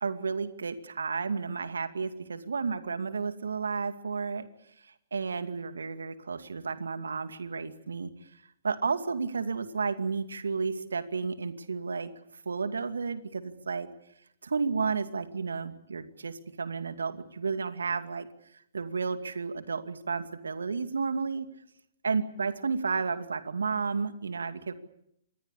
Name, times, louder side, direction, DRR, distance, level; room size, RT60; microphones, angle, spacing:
voice 1, 0.0-4.5 5.1-8.1 8.6-12.1 12.5-13.9 14.4-18.3 18.7-21.5 22.0-24.7, right 5 dB, 70° right, 10 dB, 2.4 m, -32 dB
26.5 x 21.0 x 8.5 m, 0.74 s
figure-of-eight pair, 120°, 0 cm